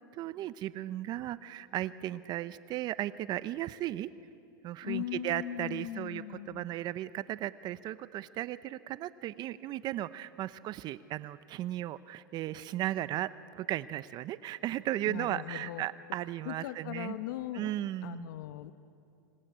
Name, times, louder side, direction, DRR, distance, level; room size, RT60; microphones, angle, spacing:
voice 1, 0.0-4.1 4.6-17.2 17.5-18.3, right 14 dB, 40° right, 15 dB, 0.6 m, -36 dB
voice 2, 4.8-6.6 15.1-15.8 16.4-17.7 18.0-18.7, left 13 dB, 75° left, 11 dB, 0.9 m, -39 dB
26.0 x 18.5 x 8.9 m, 2.6 s
supercardioid pair, 120°, 11 cm